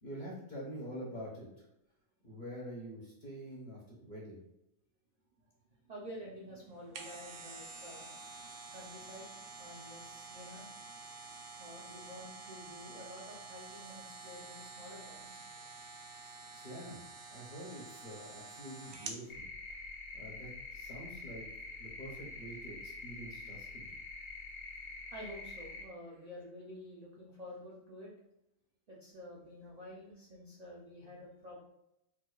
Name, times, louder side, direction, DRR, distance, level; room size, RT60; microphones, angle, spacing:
voice 1, 0.0-1.6 2.2-4.4 16.5-19.5 20.1-21.4 21.8-23.9, equal, 40° left, -4 dB, 0.7 m, -46 dB
voice 2, 5.9-8.1 8.7-9.3 9.6-10.7 11.6-15.7 25.1-28.1 28.9-31.6, equal, 60° right, -5 dB, 0.4 m, -50 dB
sound 1, 6.7-19.2 19.7-19.8, right 3 dB, 75° right, 1.0 m, -49 dB
sound 2, 19.3-25.9, left 3 dB, 70° left, 1.4 m, -46 dB
4.6 x 2.3 x 2.3 m, 0.81 s
omnidirectional pair, 1.6 m